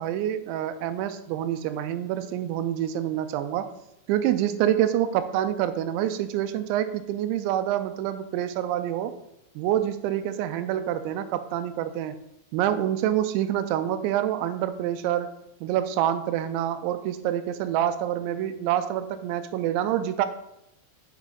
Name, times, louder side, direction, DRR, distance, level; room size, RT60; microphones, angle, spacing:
voice 1, 0.0-3.7 4.1-9.1 9.6-12.2 12.5-15.3 15.6-20.3, right 11 dB, 85° right, 10 dB, 2.9 m, -27 dB
7.2 x 5.0 x 3.8 m, 0.83 s
omnidirectional pair, 5.2 m